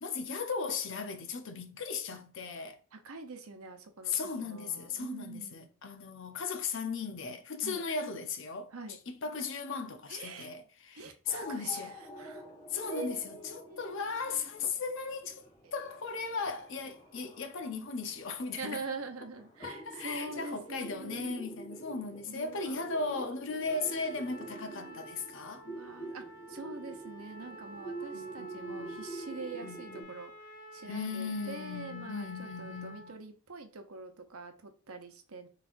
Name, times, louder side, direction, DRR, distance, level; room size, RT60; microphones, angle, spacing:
voice 1, 0.0-2.8 4.1-11.9 12.7-15.4 15.7-18.8 19.6-25.7 28.1-29.1 29.6-30.2 30.8-33.1, left 4 dB, 55° left, 0.7 m, -37 dB
voice 2, 2.9-5.7 7.6-7.8 8.7-9.0 10.1-10.5 10.9-12.5 12.9-14.1 15.6-15.7 17.4-17.5 18.6-21.5 22.3-22.8 23.8-25.0 25.6-30.3 30.7-35.5, right 3 dB, 75° right, 0.8 m, -45 dB
sound 1, 11.2-30.0, right 2 dB, 35° left, 2.2 m, -47 dB
Trumpet, 23.7-33.2, equal, 80° left, 1.3 m, -50 dB
5.8 x 3.3 x 2.6 m
head